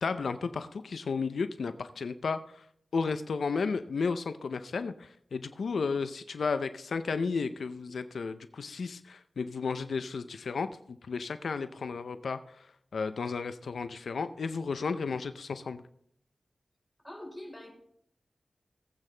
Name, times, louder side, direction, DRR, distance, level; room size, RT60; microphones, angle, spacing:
voice 1, 0.0-2.6 2.9-12.7 12.9-15.8, left 4 dB, 85° left, 11 dB, 0.5 m, -33 dB
voice 2, 17.0-17.7, left 1 dB, 5° left, 1 dB, 4.2 m, -43 dB
18.5 x 8.4 x 3.3 m, 0.70 s
wide cardioid pair, 80°, 0 cm